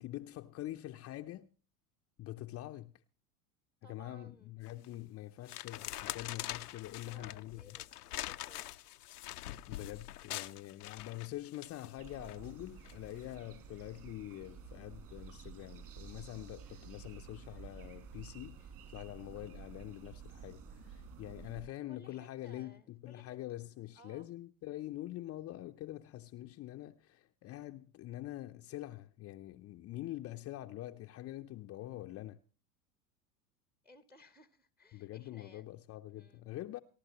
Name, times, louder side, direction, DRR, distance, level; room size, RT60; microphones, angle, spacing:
voice 1, 0.0-1.5 2.2-2.9 3.9-7.8 9.7-32.4 34.9-36.8, left 15 dB, 35° left, 0.6 m, -45 dB
voice 2, 3.8-4.5 7.0-8.9 10.4-10.7 21.9-23.4 23.9-24.3 33.8-35.7 36.1-36.5, equal, 5° right, 0.8 m, -60 dB
sound 1, 4.7-4.9 5.5-12.4 12.8-13.1, left 14 dB, 85° left, 0.6 m, -44 dB
sound 2, 12.0-21.6, right 6 dB, 45° right, 5.4 m, -51 dB
28.0 x 11.5 x 2.9 m
hypercardioid pair, 80°, 45 cm